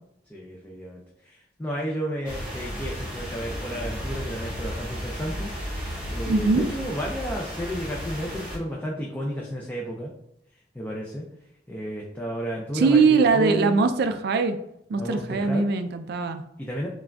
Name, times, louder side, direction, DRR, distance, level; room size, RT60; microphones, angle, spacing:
voice 1, 0.3-10.1 10.7-11.3 11.7-13.8 15.0-15.7 16.6-16.9, equal, 10° left, -3 dB, 0.4 m, -32 dB
sound 1, 2.2-8.6, equal, 5° right, 1.1 m, -33 dB
voice 2, 6.3-6.7 12.7-14.6 14.9-16.4, right 4 dB, 60° right, 8 dB, 0.4 m, -21 dB
5.9 x 2.3 x 2.3 m, 0.81 s
head